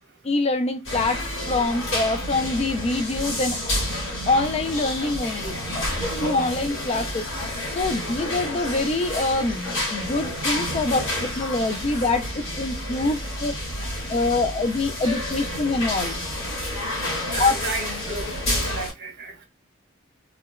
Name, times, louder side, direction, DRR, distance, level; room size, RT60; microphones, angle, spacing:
voice 1, 0.2-3.6 4.3-5.9 6.2-13.5 14.1-16.2 17.4-17.6, left 2 dB, 30° left, 0.3 m, -25 dB
sound 1, 0.8-18.9, left 1 dB, 65° left, 2.1 m, -29 dB
voice 2, 17.3-18.3 18.6-19.3, right 3 dB, 55° right, 1.2 m, -33 dB
3.1 x 2.9 x 2.3 m
head